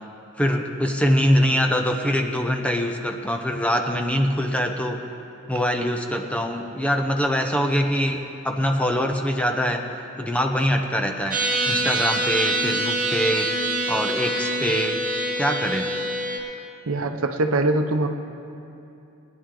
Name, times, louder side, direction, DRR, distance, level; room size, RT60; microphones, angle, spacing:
voice 1, 0.4-5.0 5.5-9.9 10.2-11.4 11.6-13.5 13.9-15.0 15.4-15.9, equal, 5° left, 3 dB, 0.7 m, -23 dB
sound 1, 11.3-16.4, right 1 dB, 40° right, 1.5 m, -25 dB
voice 2, 16.9-18.1, right 2 dB, 70° right, 6 dB, 0.8 m, -22 dB
20.0 x 9.8 x 3.8 m, 2.7 s
head